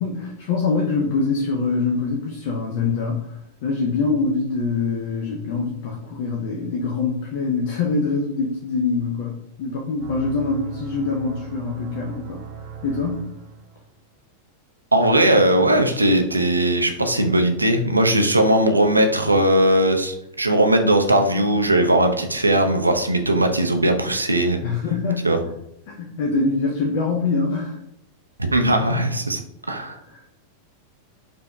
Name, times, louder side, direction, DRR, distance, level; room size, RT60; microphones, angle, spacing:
voice 1, 0.0-3.2 3.6-12.4 12.8-13.3 24.6-25.4 25.9-27.8 29.8-30.2, left 4 dB, 50° left, 0 dB, 0.5 m, -24 dB
sound 1, 10.0-13.9, right 7 dB, 40° right, 0.7 m, -38 dB
voice 2, 14.9-24.6 25.2-25.4 28.5-29.4 29.7-30.0, right 1 dB, 80° right, 6 dB, 0.4 m, -18 dB
5.1 x 2.7 x 2.3 m, 0.78 s
figure-of-eight pair, 90°, 0 cm